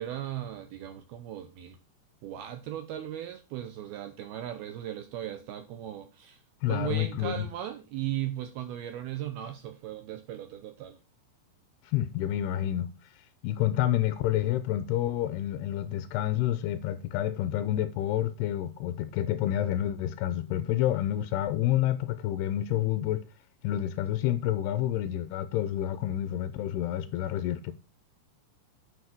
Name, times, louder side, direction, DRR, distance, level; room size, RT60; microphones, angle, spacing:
voice 1, 0.0-1.8 2.2-6.4 6.7-11.0, right 12 dB, 80° right, 2.2 m, -37 dB
voice 2, 6.6-7.5 11.8-12.9 13.4-23.2 23.6-27.7, left 12 dB, 90° left, 2.3 m, -29 dB
10.0 x 5.2 x 6.0 m
omnidirectional pair, 5.5 m